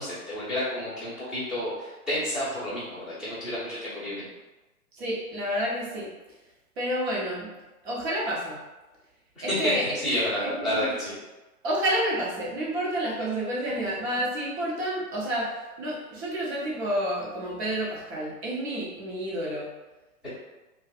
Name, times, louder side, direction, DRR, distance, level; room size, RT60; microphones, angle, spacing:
voice 1, 0.0-4.3 9.3-11.2 20.2-20.3, left 1 dB, ahead, -14 dB, 0.7 m, -30 dB
voice 2, 4.9-6.1 6.8-7.5 7.8-8.6 9.4-10.0 10.5-10.9 11.6-15.5 15.8-19.7, equal, 45° right, -5 dB, 1.0 m, -29 dB
2.5 x 2.4 x 2.4 m, 1.1 s
hypercardioid pair, 130°, 45 cm